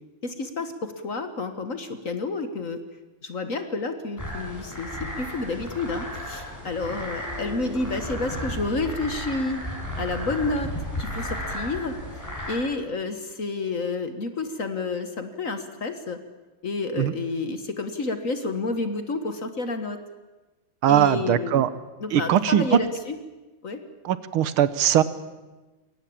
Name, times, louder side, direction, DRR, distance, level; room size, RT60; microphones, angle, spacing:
voice 1, 0.2-2.8 3.2-9.7 10.0-10.7 11.0-12.0 12.5-16.2 16.6-20.0 20.9-21.6 22.0-23.2 23.6-23.8, left 3 dB, 45° left, 8 dB, 1.6 m, -30 dB
sound 1, 4.2-12.6, equal, 10° left, 5.7 m, -34 dB
voice 2, 20.8-21.7 22.1-22.8 24.1-25.0, right 11 dB, 85° right, 15 dB, 1.9 m, -20 dB
22.0 x 17.5 x 8.7 m, 1.2 s
omnidirectional pair, 2.3 m